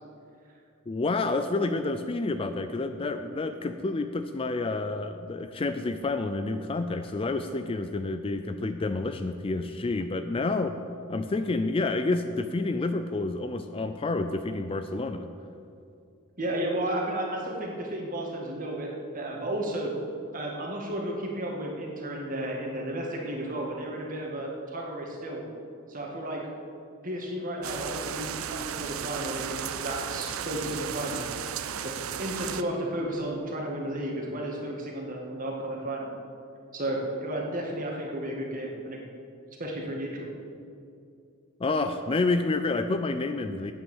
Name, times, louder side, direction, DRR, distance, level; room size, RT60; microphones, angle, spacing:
voice 1, 0.9-10.8 11.1-15.3 41.6-43.7, left 3 dB, 25° left, 9 dB, 0.4 m, -29 dB
voice 2, 16.4-19.9 20.3-25.4 25.9-26.4 27.0-31.3 31.8-31.9 32.2-36.1 36.7-39.0 39.6-40.3, right 1 dB, 35° right, -1 dB, 1.9 m, -33 dB
sound 1, 27.6-32.6, right 8 dB, 65° right, 0.5 m, -35 dB
9.4 x 8.9 x 7.1 m, 2.5 s
head